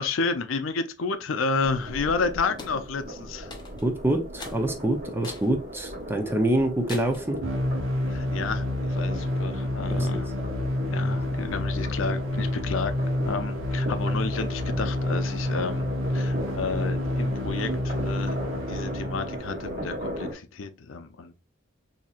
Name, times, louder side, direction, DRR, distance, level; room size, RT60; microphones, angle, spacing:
voice 1, 0.0-3.5 8.1-10.3 10.6-18.4 18.7-21.4, left 4 dB, 80° left, 0.5 m, -31 dB
sound 1, 1.6-20.3, equal, 45° right, 1.4 m, -38 dB
sound 2, 2.6-2.8 3.5-3.9 4.4-4.6 5.2-5.5 6.0-6.1 6.9-7.3, left 3 dB, 20° left, 0.7 m, -41 dB
voice 2, 3.8-7.4 9.9-10.1, right 1 dB, 10° right, 0.6 m, -26 dB
sound 3, 7.4-19.4, left 1 dB, 85° right, 1.0 m, -28 dB
4.3 x 2.8 x 2.4 m
head